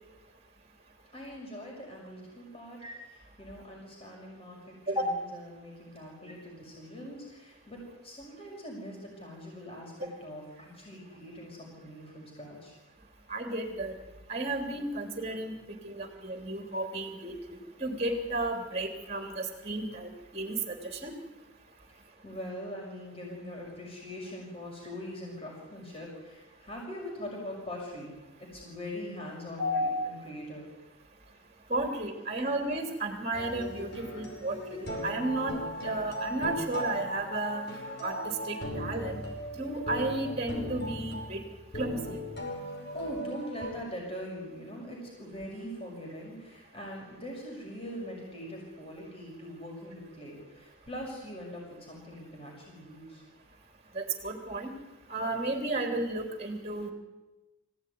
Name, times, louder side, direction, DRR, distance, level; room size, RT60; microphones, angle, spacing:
voice 1, 1.1-4.6 4.9-12.7 21.9-28.1 28.4-30.7 42.9-53.2, equal, 25° left, -2 dB, 6.1 m, -42 dB
voice 2, 13.3-13.9 14.3-15.5 15.8-21.1 29.6-30.2 31.7-35.5 35.8-37.6 38.0-39.2 39.5-41.4 41.7-42.2 53.9-54.7 55.1-56.9, right 2 dB, 30° right, 4 dB, 3.3 m, -33 dB
sound 1, 33.3-43.7, equal, 50° left, 5.4 m, -38 dB
24.5 x 17.0 x 9.6 m, 1.1 s
head